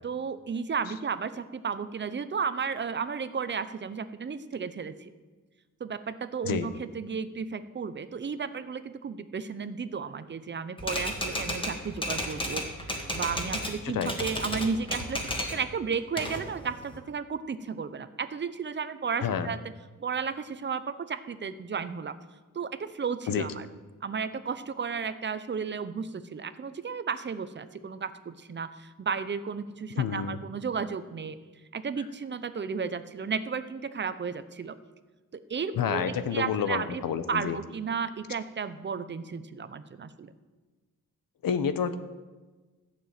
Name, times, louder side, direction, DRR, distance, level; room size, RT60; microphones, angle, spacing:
voice 1, 0.0-5.1 5.8-19.6 20.0-22.2 22.5-23.7 24.0-31.4 31.7-34.8 35.5-37.0 37.3-40.3, right 6 dB, 35° right, 12 dB, 0.7 m, -33 dB
Typewriter, 10.8-13.8 14.0-15.6 15.9-17.0, equal, 15° left, 1.8 m, -33 dB
voice 2, 30.0-30.4 35.8-37.6 41.4-42.0, left 7 dB, 85° left, 12 dB, 1.0 m, -29 dB
15.0 x 6.8 x 9.0 m, 1.3 s
wide cardioid pair, 170°, 33 cm